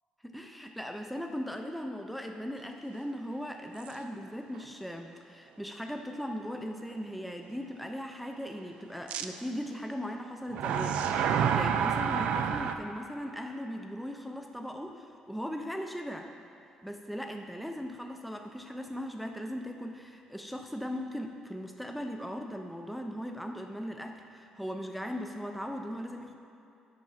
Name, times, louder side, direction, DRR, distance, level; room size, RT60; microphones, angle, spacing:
voice 1, 0.2-16.3 16.8-26.4, equal, ahead, 4 dB, 0.3 m, -38 dB
sound 1, 3.8-3.9 4.6-4.7 9.1-9.3 10.5-12.8, right 7 dB, 75° right, 0.4 m, -28 dB
6.1 x 5.1 x 6.1 m, 2.7 s
cardioid pair, 150°, 2 cm